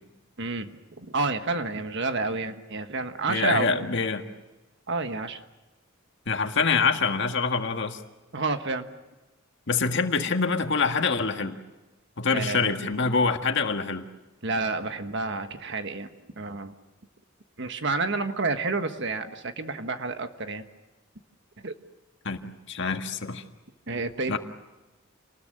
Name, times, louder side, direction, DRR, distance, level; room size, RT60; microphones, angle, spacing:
voice 1, 0.4-3.8 4.9-5.4 8.3-8.9 12.3-12.7 14.4-16.1 16.4-16.7 17.6-20.6 21.6-21.7 23.9-24.4, right 3 dB, 60° right, 8 dB, 1.4 m, -29 dB
voice 2, 3.3-4.2 6.3-8.0 9.7-11.6 12.2-14.1 22.3-23.4 24.3-24.4, left 4 dB, 60° left, 6 dB, 1.7 m, -25 dB
28.0 x 20.0 x 7.6 m, 1.1 s
head